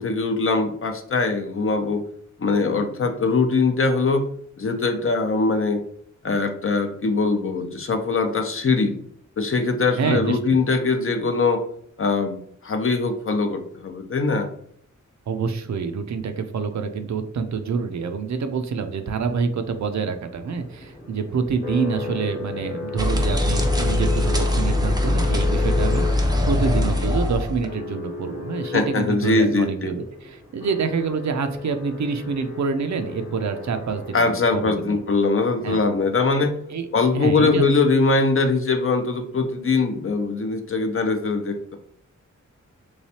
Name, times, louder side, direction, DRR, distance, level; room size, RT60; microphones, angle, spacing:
voice 1, 0.0-2.0 2.4-4.3 4.6-5.8 6.2-8.9 9.4-11.6 12.0-14.5 28.7-29.9 34.1-36.5 36.9-41.8, left 3 dB, 45° left, 6 dB, 0.6 m, -22 dB
voice 2, 10.0-10.4 15.3-35.0 35.6-35.8 36.4-37.6, right 5 dB, 65° right, 7 dB, 0.5 m, -27 dB
sound 1, 18.9-35.0, left 5 dB, 30° left, 0.9 m, -35 dB
sound 2, 23.0-27.7, left 1 dB, 15° right, 0.5 m, -21 dB
3.3 x 3.2 x 2.8 m, 0.66 s
wide cardioid pair, 95°, 30 cm